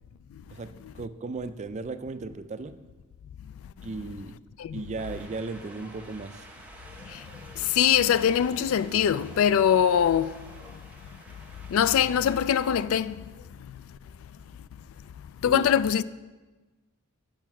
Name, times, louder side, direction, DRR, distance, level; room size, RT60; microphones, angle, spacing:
voice 1, 0.5-2.8 3.8-4.4 4.7-6.5 15.4-15.6, right 3 dB, 35° right, 0.4 m, -36 dB
Wind, 5.0-12.7, right 1 dB, 5° right, 0.9 m, -49 dB
voice 2, 7.8-10.3 11.7-13.1 15.4-16.0, left 9 dB, 75° left, 0.3 m, -22 dB
9.0 x 5.6 x 5.9 m
head